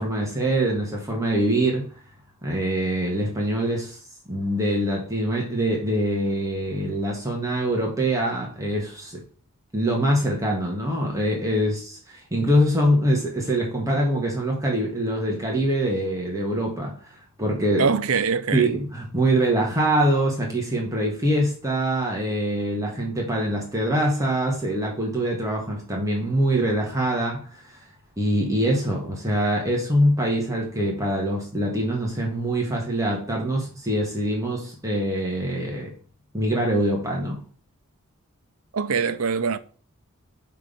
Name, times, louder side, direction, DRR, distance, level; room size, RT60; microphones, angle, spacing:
voice 1, 0.0-1.9 2.4-4.0 4.3-9.2 9.7-16.9 17.4-17.9 18.5-27.5 28.2-35.9 36.3-37.4, right 1 dB, 15° right, 1.6 m, -24 dB
voice 2, 17.8-18.7 38.7-39.6, right 5 dB, 80° right, 0.6 m, -23 dB
5.3 x 4.7 x 5.3 m
head